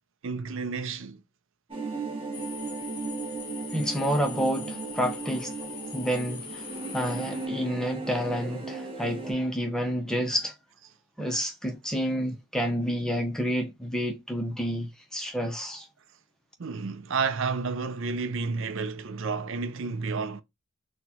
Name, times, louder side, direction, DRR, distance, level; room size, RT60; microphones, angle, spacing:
voice 1, 0.2-1.2 16.6-20.4, right 4 dB, 60° right, 0.5 m, -31 dB
sound 1, 1.7-9.3, right 4 dB, 25° right, 0.9 m, -36 dB
sound 2, 2.3-7.5, left 8 dB, 90° left, 0.9 m, -42 dB
voice 2, 3.7-10.5 11.2-15.9, equal, 5° left, 0.6 m, -29 dB
4.2 x 2.2 x 2.8 m
head